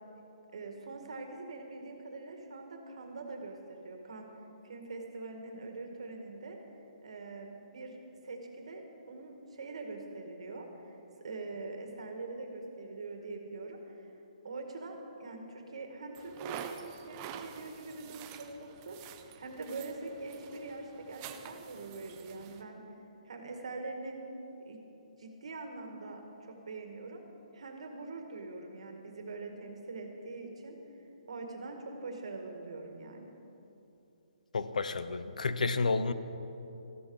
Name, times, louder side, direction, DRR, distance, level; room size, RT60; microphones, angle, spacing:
voice 1, 0.5-4.4 4.6-6.6 7.0-8.0 8.2-14.1 14.4-22.8 23.2-24.1 24.7-24.8 25.2-27.2 27.5-33.3, right 3 dB, 50° right, 3 dB, 1.8 m, -43 dB
sound 1, 16.1-22.6, right 8 dB, 10° right, 0.3 m, -47 dB
voice 2, 34.5-36.1, left 4 dB, 80° left, 13 dB, 0.7 m, -30 dB
14.5 x 12.5 x 4.8 m, 2.9 s
hypercardioid pair, 180°, 4 cm